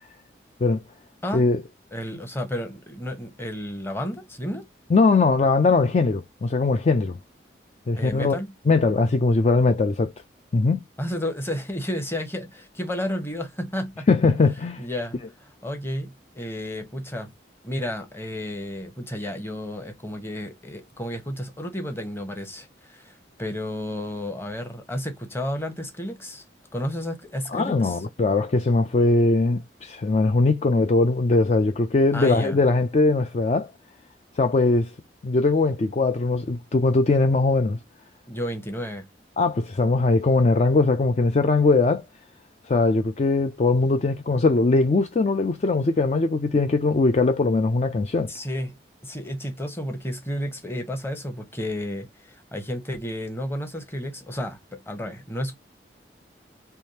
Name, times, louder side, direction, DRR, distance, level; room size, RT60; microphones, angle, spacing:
voice 1, 1.9-4.7 7.9-8.5 11.0-14.1 14.8-17.3 17.6-26.4 26.7-28.0 32.1-32.6 38.3-39.1 48.3-48.7 49.0-55.5, left 1 dB, 15° left, 1.0 m, -32 dB
voice 2, 4.9-7.2 7.9-8.4 8.7-10.1 10.5-10.8 14.1-14.9 27.5-33.7 34.4-34.9 35.2-37.8 39.4-42.0 42.7-48.3, left 3 dB, 40° left, 0.4 m, -20 dB
3.5 x 3.1 x 2.8 m
head